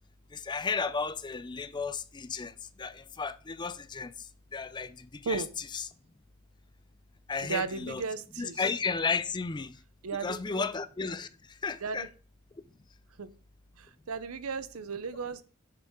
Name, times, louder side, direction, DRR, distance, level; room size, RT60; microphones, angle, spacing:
voice 1, 0.3-5.9 7.3-8.0 8.4-9.8 10.1-12.1, left 5 dB, 20° left, 0.4 m, -34 dB
voice 2, 7.4-8.6 10.0-10.7 11.8-12.1 13.2-13.3 13.8-15.4, right 5 dB, 80° right, 0.7 m, -35 dB
6.9 x 6.7 x 3.7 m
head